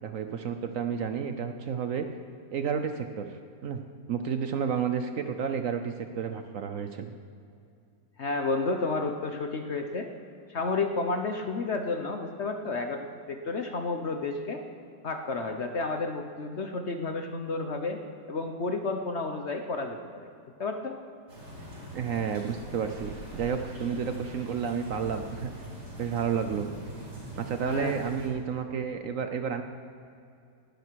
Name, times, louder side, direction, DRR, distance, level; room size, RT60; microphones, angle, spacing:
voice 1, 0.0-2.1 2.5-3.8 4.1-7.1 21.9-25.5 26.0-26.7 27.4-29.6, right 7 dB, 60° right, 7 dB, 1.0 m, -31 dB
voice 2, 8.2-10.1 10.5-14.6 15.0-18.0 18.3-20.0 20.6-21.0 27.6-28.0, left 3 dB, 50° left, 5 dB, 1.0 m, -31 dB
sound 1, 21.3-28.3, right 1 dB, 90° right, 5.6 m, -43 dB
19.5 x 12.0 x 4.7 m, 2.5 s
omnidirectional pair, 1.8 m